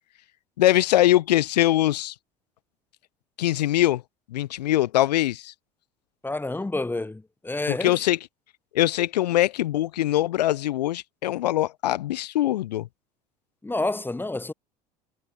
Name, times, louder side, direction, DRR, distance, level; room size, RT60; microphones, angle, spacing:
voice 1, 0.6-2.1 3.4-4.0 4.3-5.5 7.7-8.2 8.7-12.9, left 14 dB, 80° left, 0.8 m, -22 dB
voice 2, 6.2-7.9 13.6-14.5, left 2 dB, 10° left, 1.1 m, -29 dB
hypercardioid pair, 70°, 21 cm